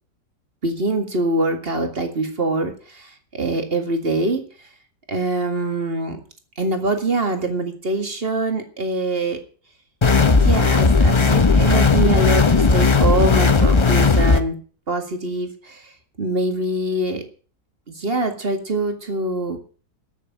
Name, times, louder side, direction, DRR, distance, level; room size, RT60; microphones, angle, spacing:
voice 1, 0.6-4.4 5.1-6.2 6.6-9.4 10.4-14.6 14.9-15.9 16.2-17.2 17.9-19.6, right 2 dB, 35° right, 5 dB, 2.1 m, -24 dB
sound 1, 10.0-14.4, left 4 dB, 50° left, 0.3 m, -15 dB
13.5 x 6.8 x 8.4 m, 0.41 s
omnidirectional pair, 1.8 m